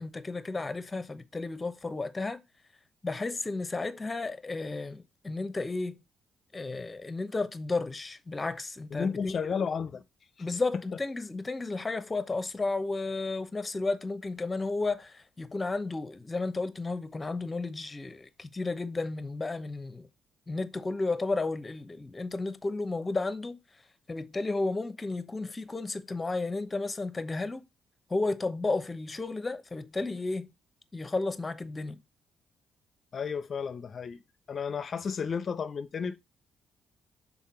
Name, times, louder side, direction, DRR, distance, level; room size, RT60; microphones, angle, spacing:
voice 1, 0.0-2.4 3.0-6.0 6.5-9.7 10.4-20.1 20.5-23.6 24.1-27.6 28.1-30.5 30.9-32.0, left 3 dB, 25° left, 0.8 m, -33 dB
voice 2, 8.9-10.0 33.1-34.2 34.5-36.2, left 6 dB, 50° left, 0.5 m, -32 dB
5.7 x 4.1 x 4.4 m
cardioid pair, 90°, 0 cm